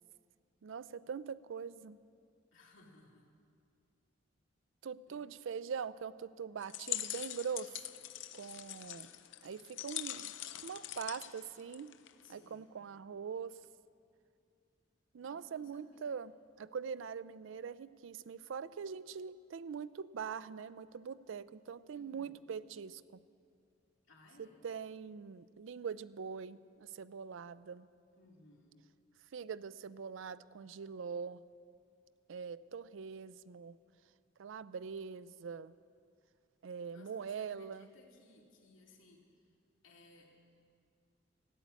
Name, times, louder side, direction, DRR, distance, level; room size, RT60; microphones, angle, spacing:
voice 1, 0.6-2.0 4.8-7.9 8.3-9.1 9.4-10.3 10.6-11.9 12.3-13.6 15.1-16.3 16.6-23.0 24.4-27.9 29.3-31.4 32.3-33.8 34.4-35.7 36.6-37.9, right 6 dB, 75° right, 17 dB, 0.4 m, -43 dB
voice 2, 2.5-3.3 5.1-5.2 12.2-12.7 15.2-16.3 21.9-22.5 24.1-24.6 28.2-28.9 36.9-39.5 39.8-40.3, left 2 dB, 85° left, -1 dB, 2.4 m, -62 dB
sound 1, 6.6-12.3, left 13 dB, 70° left, 0.5 m, -43 dB
sound 2, 8.2-8.5 8.8-12.6 12.9-13.8, right 1 dB, 20° right, 4.8 m, -77 dB
14.5 x 8.2 x 9.7 m, 2.4 s
head